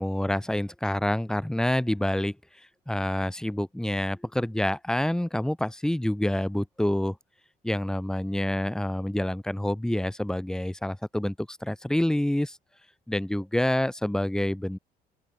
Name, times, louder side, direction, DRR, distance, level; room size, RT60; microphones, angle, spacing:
voice 1, 0.0-2.3 2.9-7.2 7.6-12.6 13.1-14.8, left 1 dB, 5° left, 3.3 m, -27 dB
open air
cardioid pair, 110°, 17 cm